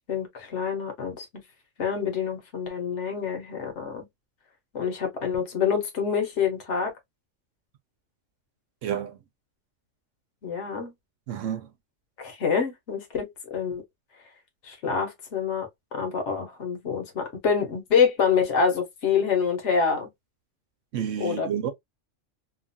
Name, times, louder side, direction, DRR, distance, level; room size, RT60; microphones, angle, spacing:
voice 1, 0.1-1.3 1.8-4.1 4.7-6.9 10.4-10.9 12.2-13.8 14.6-20.1 21.2-21.5, left 6 dB, 70° left, 1.2 m, -26 dB
voice 2, 8.8-9.2 11.3-11.7 20.9-21.7, right 9 dB, 85° right, 1.1 m, -30 dB
2.9 x 2.4 x 2.5 m
omnidirectional pair, 1.3 m